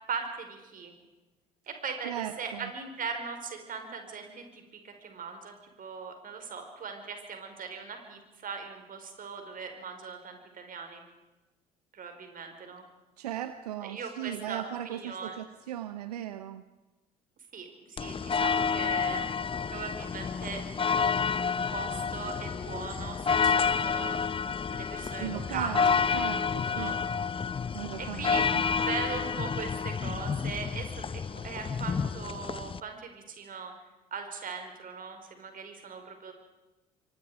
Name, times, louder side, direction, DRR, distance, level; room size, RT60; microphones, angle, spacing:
voice 1, 0.1-0.9 1.7-11.0 11.9-12.8 13.8-15.4 17.5-19.2 19.5-20.6 20.9-21.1 21.4-24.2 24.7-25.7 26.3-27.0 28.0-33.7 34.1-36.3, right 5 dB, 45° right, 5 dB, 5.0 m, -40 dB
voice 2, 2.0-2.7 13.2-16.6 25.2-27.0 27.7-28.6, right 11 dB, 80° right, 12 dB, 0.8 m, -38 dB
sound 1, 18.0-32.8, left 6 dB, 25° left, 0.9 m, -29 dB
27.0 x 24.5 x 5.0 m, 1.1 s
figure-of-eight pair, 55°, 20 cm